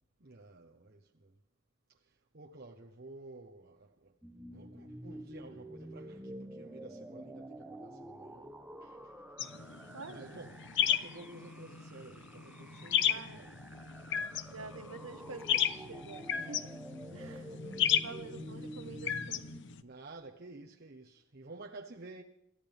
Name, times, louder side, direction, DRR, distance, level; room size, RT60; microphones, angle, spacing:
voice 1, 0.2-1.4 1.9-4.2 4.5-8.5 8.8-9.2 10.0-13.5 17.0-18.0 19.8-22.2, right 2 dB, 50° right, 1.2 m, -52 dB
sound 1, 4.2-19.6, right 1 dB, 5° right, 0.9 m, -49 dB
sound 2, 9.4-19.8, left 10 dB, 60° left, 0.9 m, -35 dB
voice 2, 9.9-10.3 13.1-13.4 14.5-16.7 17.1-17.5 18.0-19.5, right 3 dB, 85° right, 1.3 m, -47 dB
28.0 x 14.0 x 3.6 m
head